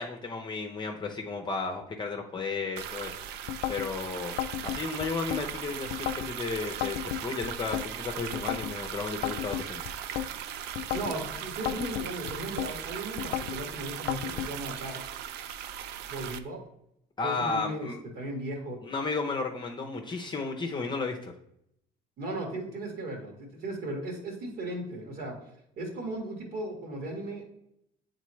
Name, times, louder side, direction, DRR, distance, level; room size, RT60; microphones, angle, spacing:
voice 1, 0.0-3.2 3.7-4.4 4.6-9.8 17.2-18.0 18.8-21.3, left 4 dB, 25° left, 2 dB, 0.7 m, -33 dB
sound 1, 2.8-16.4, right 9 dB, 80° right, 0.4 m, -38 dB
sound 2, 3.5-3.9 4.4-5.4 5.9-6.3 6.8-7.9 8.3-8.7 9.2-10.3 10.8-11.2 11.7-12.7 13.2-13.6 14.1-14.5, left 12 dB, 85° left, 0.4 m, -33 dB
voice 2, 10.9-15.0 16.1-16.6 17.2-17.9 18.2-18.8 22.2-25.4 25.8-27.4, right 1 dB, 65° right, 2 dB, 1.9 m, -36 dB
8.1 x 3.9 x 3.1 m, 0.76 s
cardioid pair, 110°, 17 cm